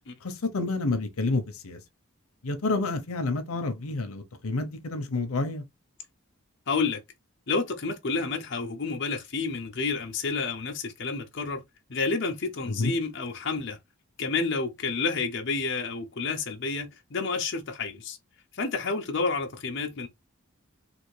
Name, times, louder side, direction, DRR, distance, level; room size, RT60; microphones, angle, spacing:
voice 1, 0.2-1.8 2.4-5.6 12.7-12.9, left 3 dB, 90° left, 0.8 m, -29 dB
voice 2, 6.7-7.0 7.5-11.6 11.9-13.8 14.2-18.2 18.5-20.1, left 4 dB, 55° left, 0.7 m, -30 dB
3.4 x 2.5 x 3.1 m
head